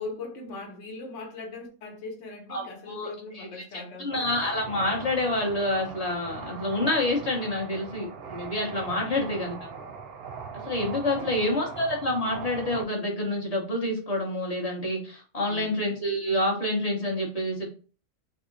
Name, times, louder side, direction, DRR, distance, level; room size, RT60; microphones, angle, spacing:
voice 1, 0.0-4.3 9.2-10.0 11.1-11.8 15.5-15.8, left 3 dB, 65° left, 1.1 m, -41 dB
voice 2, 2.5-3.5 4.0-9.6 10.7-17.7, left 1 dB, 35° left, 0.8 m, -28 dB
sound 1, 4.1-12.8, right 5 dB, 60° right, 0.7 m, -40 dB
3.5 x 2.0 x 3.8 m
omnidirectional pair, 1.4 m